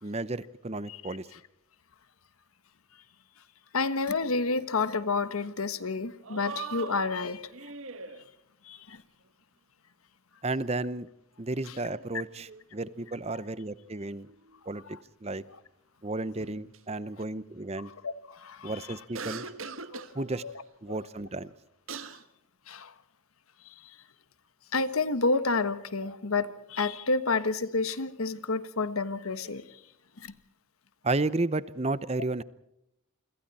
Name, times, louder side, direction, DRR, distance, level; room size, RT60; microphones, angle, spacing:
voice 1, 0.0-1.3 10.4-11.1 11.4-14.3 14.7-14.8 15.2-15.4 16.0-17.9 18.6-19.4 20.1-20.4 20.8-21.5 31.0-32.4, right 2 dB, 30° right, 16 dB, 0.8 m, -32 dB
voice 2, 3.7-7.5 8.6-9.0 11.7-11.8 14.9-15.0 18.0-18.8 19.9-20.5 20.9-21.0 22.7-22.9 24.7-29.6 30.2-30.3, left 3 dB, 85° left, 13 dB, 1.4 m, -30 dB
sound 1, 4.5-4.9 5.2-5.3 6.2-8.3 11.7-13.4 13.8-14.6 16.4-16.8 19.1-20.1 21.5-21.6 21.9-22.2, right 4 dB, 70° right, 1.5 m, -42 dB
28.5 x 25.5 x 4.3 m, 0.80 s
head